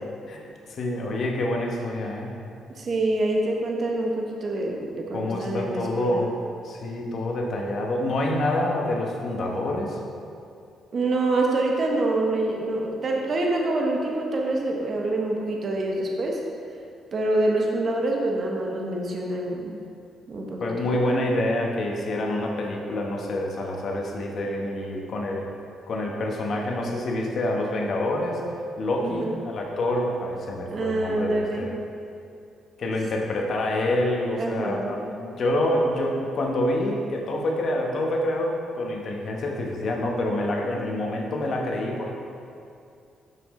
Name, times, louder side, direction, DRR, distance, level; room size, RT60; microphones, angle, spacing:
voice 1, 0.7-2.3 5.1-10.0 20.6-25.5 25.9-31.7 32.8-42.1, left 1 dB, 55° left, 0 dB, 1.0 m, -27 dB
voice 2, 2.7-6.2 10.9-16.4 17.1-19.8 20.3-21.0 29.0-29.4 30.7-31.7 34.4-35.0 40.6-40.7, right 2 dB, 45° right, 0 dB, 0.8 m, -26 dB
6.1 x 6.0 x 3.7 m, 2.5 s
cardioid pair, 90°, 0 cm